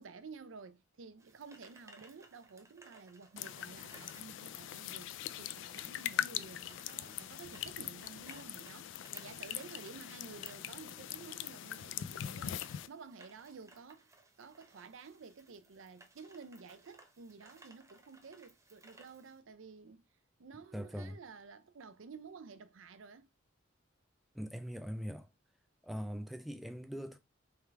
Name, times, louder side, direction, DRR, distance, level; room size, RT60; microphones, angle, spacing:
voice 1, 0.0-12.6 12.9-20.0 20.4-23.3, right 5 dB, 90° right, 0.5 m, -52 dB
Shopping cart - wheels medium speed, 1.2-19.4, right 2 dB, 15° right, 0.8 m, -62 dB
sound 1, 3.4-12.9, left 11 dB, 70° left, 0.3 m, -42 dB
voice 2, 20.7-21.2 24.3-25.3 25.8-27.2, equal, ahead, 0.4 m, -41 dB
3.7 x 3.3 x 4.5 m
head